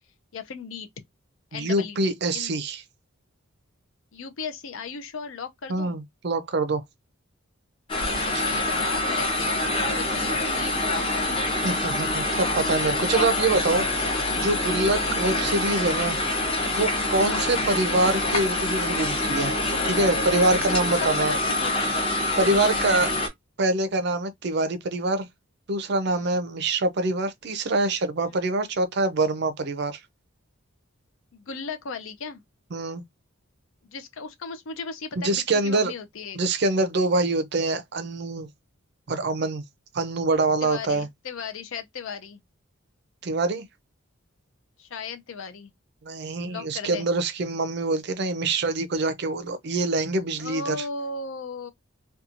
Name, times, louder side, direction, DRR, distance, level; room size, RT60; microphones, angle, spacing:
voice 1, 0.3-0.9 1.5-2.5 4.1-6.0 8.4-11.3 17.2-17.5 20.4-21.9 22.4-22.8 26.1-26.4 28.2-28.3 31.3-32.4 33.8-36.4 40.6-42.4 44.8-45.7 46.5-47.1 50.4-51.7, left 5 dB, 65° left, 0.5 m, -36 dB
voice 2, 1.5-2.8 5.7-6.8 11.6-16.2 16.8-21.3 22.4-23.1 23.6-25.3 25.7-30.0 32.7-33.0 35.2-35.9 36.4-38.5 39.1-39.6 39.9-41.1 43.2-43.7 46.0-50.8, right 2 dB, 50° right, 0.5 m, -25 dB
sound 1, 7.9-23.3, left 2 dB, 25° left, 0.6 m, -26 dB
2.9 x 2.3 x 2.5 m
head